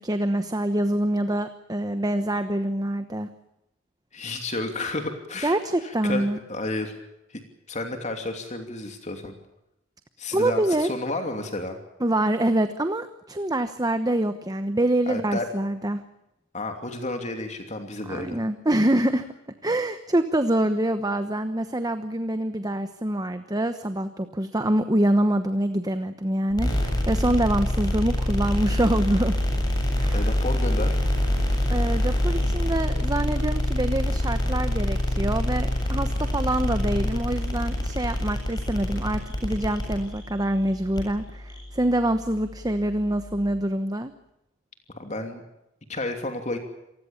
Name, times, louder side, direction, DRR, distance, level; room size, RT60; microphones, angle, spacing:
voice 1, 0.0-3.3 5.4-6.4 10.3-10.9 12.0-16.0 18.1-19.2 19.6-29.4 30.0-30.3 31.7-44.1, right 1 dB, 20° right, 9 dB, 1.1 m, -25 dB
voice 2, 4.1-7.0 7.3-7.4 7.7-9.4 10.2-11.8 15.1-15.5 16.5-18.4 30.1-31.0 44.9-45.4 45.9-46.6, left 2 dB, 35° left, 5 dB, 2.9 m, -31 dB
sound 1, 26.5-43.6, left 1 dB, 20° left, 7.7 m, -26 dB
27.5 x 19.5 x 7.2 m, 0.89 s
head